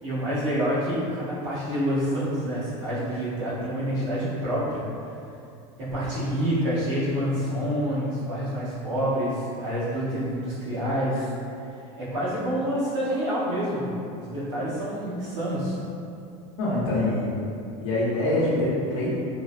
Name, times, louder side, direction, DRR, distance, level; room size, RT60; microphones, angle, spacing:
voice 1, 0.0-4.8 5.8-11.3 12.0-15.7, equal, 85° right, -10 dB, 1.4 m, -27 dB
voice 2, 16.6-17.3 17.8-19.1, left 1 dB, 85° left, -7 dB, 0.8 m, -24 dB
3.7 x 2.0 x 2.5 m, 2.6 s
supercardioid pair, 145°, 16 cm